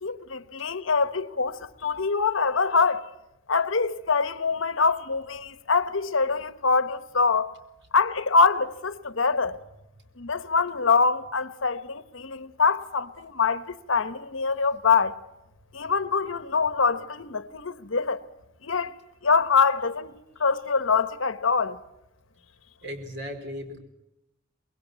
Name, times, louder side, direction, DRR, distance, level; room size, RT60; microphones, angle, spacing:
voice 1, 0.0-3.1 3.5-7.5 7.9-9.6 10.2-15.2 15.7-18.2 18.6-18.9 19.2-20.1 20.4-21.8, left 4 dB, 75° left, 1.1 m, -24 dB
voice 2, 22.8-23.8, left 1 dB, 60° right, 4.3 m, -36 dB
25.0 x 21.0 x 8.2 m
head